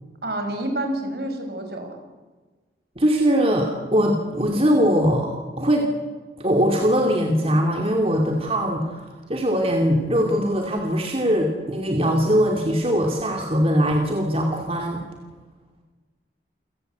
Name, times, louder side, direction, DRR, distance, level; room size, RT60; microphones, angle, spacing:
voice 1, 0.2-1.9, right 1 dB, 65° right, 5 dB, 5.5 m, -28 dB
voice 2, 3.0-5.9 6.4-15.0, equal, 35° right, 2 dB, 2.6 m, -21 dB
28.5 x 18.0 x 8.0 m, 1.3 s
head